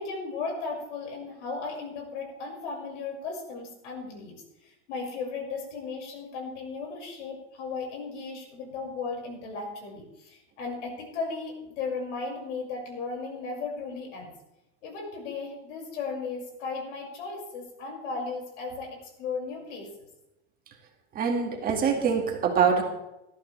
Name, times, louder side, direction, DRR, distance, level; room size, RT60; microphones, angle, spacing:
voice 1, 0.0-4.4 4.6-14.3 14.8-20.1, left 4 dB, 75° left, 0 dB, 5.9 m, -36 dB
voice 2, 21.2-22.8, right 6 dB, 25° right, 2 dB, 2.0 m, -24 dB
19.5 x 14.0 x 3.4 m, 0.92 s
supercardioid pair, 165°, 36 cm